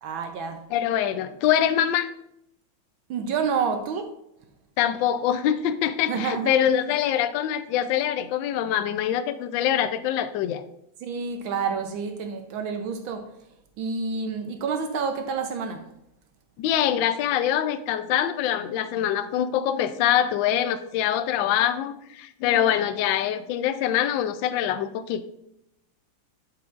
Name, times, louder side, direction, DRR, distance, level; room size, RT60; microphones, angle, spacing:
voice 1, 0.0-0.7 3.1-4.1 6.1-6.6 11.0-13.3 13.8-15.9, right 5 dB, 75° right, 1.4 m, -29 dB
voice 2, 0.7-2.1 4.8-10.6 16.6-25.2, left 10 dB, 75° left, 1.2 m, -24 dB
8.4 x 7.7 x 2.5 m
omnidirectional pair, 2.3 m